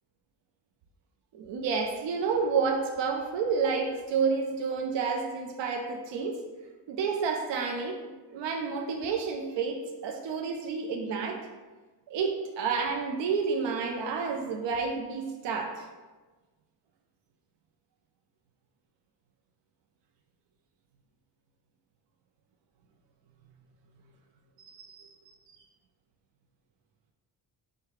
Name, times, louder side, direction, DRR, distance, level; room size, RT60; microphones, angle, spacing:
voice 1, 1.3-6.4 6.9-11.4 12.1-15.9 24.6-25.2 25.5-25.6, right 5 dB, 75° right, 2 dB, 0.6 m, -30 dB
4.8 x 2.2 x 4.6 m, 1.3 s
wide cardioid pair, 130°, 44 cm